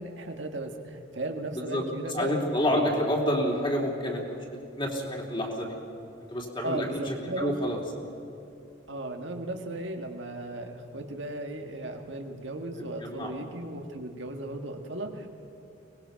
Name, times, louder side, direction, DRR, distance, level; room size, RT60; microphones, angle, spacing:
voice 1, 0.0-2.4 2.7-2.9 6.6-7.5 8.9-15.3, right 2 dB, 70° right, 4 dB, 1.9 m, -36 dB
voice 2, 2.1-4.4 4.8-5.8 6.3-7.8 13.0-13.3, equal, 25° left, 0 dB, 3.4 m, -28 dB
24.0 x 20.0 x 5.9 m, 2.8 s
head